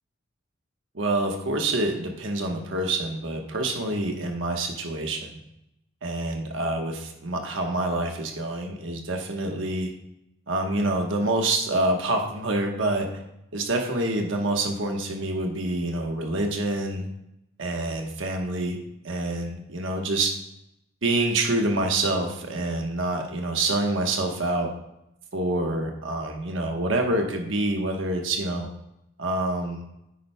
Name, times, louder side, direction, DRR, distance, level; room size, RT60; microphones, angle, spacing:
voice 1, 0.9-5.4 6.0-9.9 10.5-13.1 13.5-17.1 17.6-18.8 19.0-20.3 21.0-24.7 25.3-28.7 29.2-29.8, right 2 dB, 70° right, 2 dB, 1.2 m, -27 dB
9.7 x 9.1 x 2.2 m, 0.84 s
head